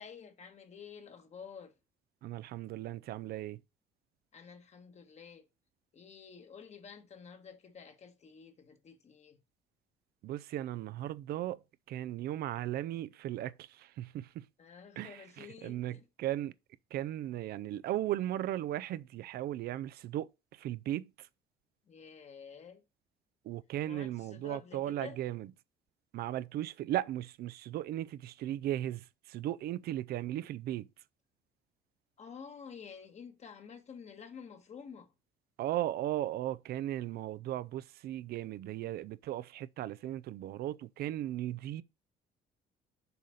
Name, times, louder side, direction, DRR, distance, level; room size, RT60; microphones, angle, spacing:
voice 1, 0.0-1.8 4.3-5.5 5.9-9.4 14.6-16.1 21.8-22.8 23.8-25.2 32.2-35.1, left 6 dB, 40° left, 1.4 m, -50 dB
voice 2, 2.2-3.6 10.2-11.6 11.9-14.4 15.0-16.5 16.9-21.3 23.4-25.5 26.1-30.9 35.6-41.8, right 13 dB, 65° right, 0.5 m, -37 dB
6.8 x 4.0 x 6.4 m
cardioid pair, 110°, 17 cm